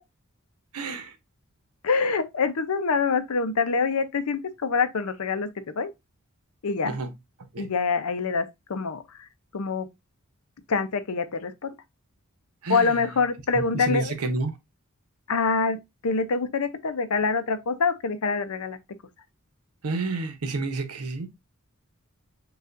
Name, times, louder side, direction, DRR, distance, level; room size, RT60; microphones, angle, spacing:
voice 1, 0.7-1.1 6.8-7.1 7.5-7.6 12.6-12.9 13.7-14.5 19.8-21.3, right 3 dB, 85° right, 0.8 m, -29 dB
voice 2, 1.8-5.5 5.8-5.9 6.6-6.9 7.6-9.0 9.5-9.9 10.7-11.8 12.7-14.1 15.3-18.8, left 4 dB, 75° left, 0.6 m, -25 dB
6.7 x 2.4 x 2.5 m
head